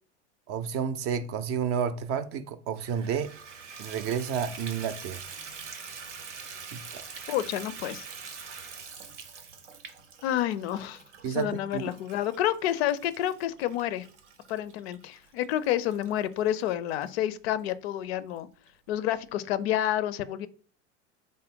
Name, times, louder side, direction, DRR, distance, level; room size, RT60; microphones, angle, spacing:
voice 1, 0.5-3.3 3.8-5.3 6.7-7.0 11.2-11.8, right 7 dB, 40° right, 0.5 m, -31 dB
Water tap faucet / Bathtub (filling or washing), 2.7-17.1 17.7-17.8 18.3-18.4 18.7-18.8, right 5 dB, 90° right, 0.7 m, -45 dB
voice 2, 7.3-8.1 10.2-11.0 11.3-14.1 14.5-18.5 18.9-20.5, left 12 dB, 65° left, 0.5 m, -29 dB
3.6 x 2.1 x 3.6 m
hypercardioid pair, 85°, 35 cm